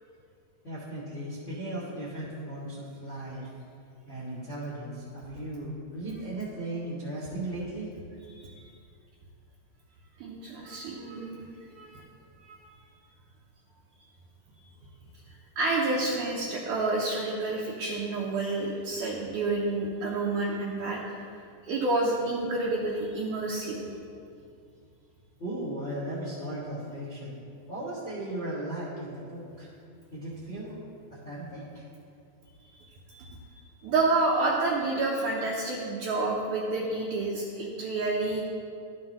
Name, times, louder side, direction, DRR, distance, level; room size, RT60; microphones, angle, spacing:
voice 1, 0.6-3.5 4.1-7.9 25.4-27.3 27.7-29.7 30.1-30.8 31.2-31.8, right 1 dB, 35° left, -9 dB, 1.2 m, -36 dB
voice 2, 8.3-8.6 10.2-11.5 11.7-12.0 12.4-12.6 15.6-21.2 21.6-23.8 33.1-38.4, right 2 dB, 75° right, -4 dB, 1.9 m, -29 dB
12.0 x 7.6 x 3.0 m, 2.4 s
omnidirectional pair, 4.3 m